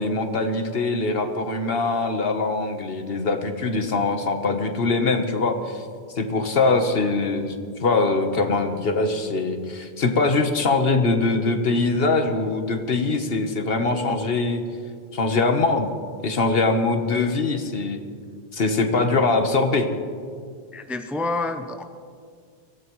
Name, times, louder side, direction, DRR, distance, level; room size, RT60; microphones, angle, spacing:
voice 1, 0.0-5.8 6.2-7.5 7.8-14.6 15.1-15.9 16.2-18.0 18.5-19.9, left 3 dB, 70° left, 6 dB, 1.3 m, -22 dB
voice 2, 20.7-21.8, left 2 dB, ahead, 7 dB, 0.6 m, -28 dB
23.5 x 17.0 x 3.1 m, 2.1 s
omnidirectional pair, 1.0 m